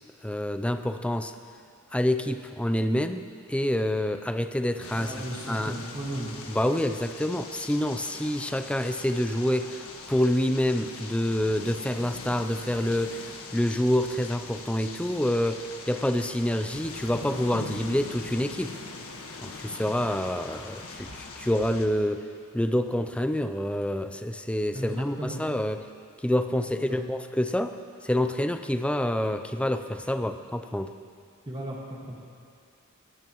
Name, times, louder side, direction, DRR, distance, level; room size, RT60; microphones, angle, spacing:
voice 1, 0.2-1.3 1.9-5.8 6.5-18.8 19.4-22.3 22.5-25.9 26.2-27.8 28.0-30.9, left 1 dB, 5° left, 8 dB, 0.5 m, -27 dB
sound 1, 4.8-21.9, left 3 dB, 85° left, 1.5 m, -42 dB
voice 2, 4.9-6.3 24.7-25.4 26.9-27.1 31.5-32.2, right 1 dB, 25° right, -3 dB, 1.7 m, -35 dB
21.0 x 17.5 x 3.1 m, 2.3 s
head